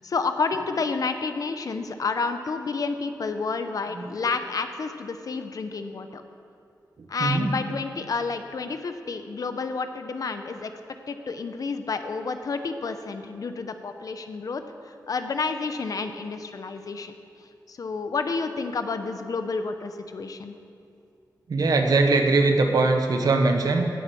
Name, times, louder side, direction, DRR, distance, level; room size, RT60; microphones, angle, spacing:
voice 1, 0.0-6.2 7.1-10.7 11.1-17.1 17.7-20.5, left 4 dB, 55° left, 8 dB, 0.8 m, -30 dB
voice 2, 7.2-7.6 21.5-23.9, right 3 dB, 65° right, 4 dB, 1.3 m, -21 dB
16.5 x 7.9 x 6.2 m, 2.5 s
wide cardioid pair, 165°, 7 cm